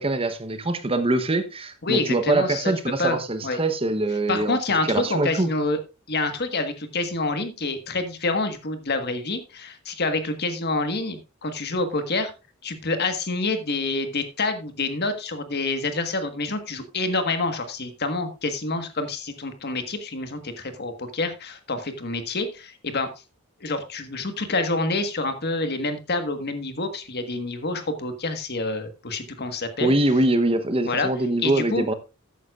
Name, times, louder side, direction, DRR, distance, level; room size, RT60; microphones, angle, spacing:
voice 1, 0.0-4.6 4.8-5.5 29.8-31.9, right 2 dB, 25° right, 0.9 m, -23 dB
voice 2, 1.8-3.2 3.4-3.6 4.3-5.8 6.1-12.3 12.6-23.1 23.6-29.9 30.8-31.1 31.4-31.8, left 3 dB, 50° left, 1.5 m, -27 dB
13.0 x 9.4 x 2.4 m
head